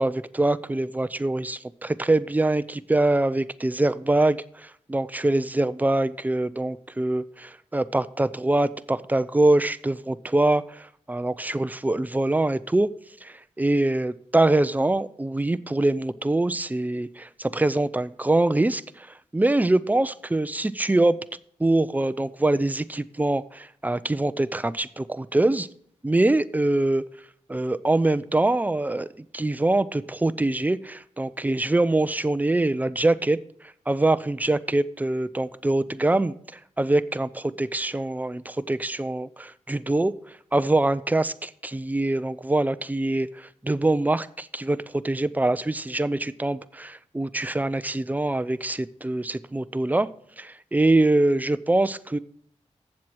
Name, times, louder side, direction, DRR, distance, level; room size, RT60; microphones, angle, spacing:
voice 1, 0.0-12.9 13.2-19.1 19.3-21.2 21.6-25.7 26.0-27.0 27.5-29.1 29.3-33.4 33.9-40.1 40.5-50.1 50.4-52.2, right 2 dB, 15° right, 14 dB, 0.5 m, -24 dB
7.5 x 7.4 x 6.2 m, 0.63 s
cardioid pair, 70°, 12 cm